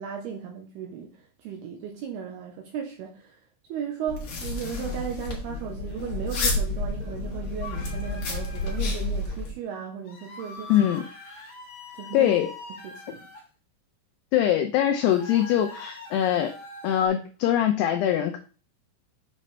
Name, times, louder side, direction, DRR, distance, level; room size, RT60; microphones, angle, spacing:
voice 1, 0.0-11.0 12.0-12.4 12.8-13.3, right 8 dB, 80° right, 2.4 m, -36 dB
sound 1, 4.1-9.5, left 2 dB, 70° left, 1.3 m, -30 dB
sound 2, 7.6-8.8 10.0-13.4 15.0-17.1, left 3 dB, 45° left, 2.8 m, -43 dB
voice 2, 10.7-11.0 12.1-12.5 14.3-16.5 16.8-18.4, left 11 dB, 90° left, 2.3 m, -22 dB
7.5 x 6.3 x 3.3 m
omnidirectional pair, 5.5 m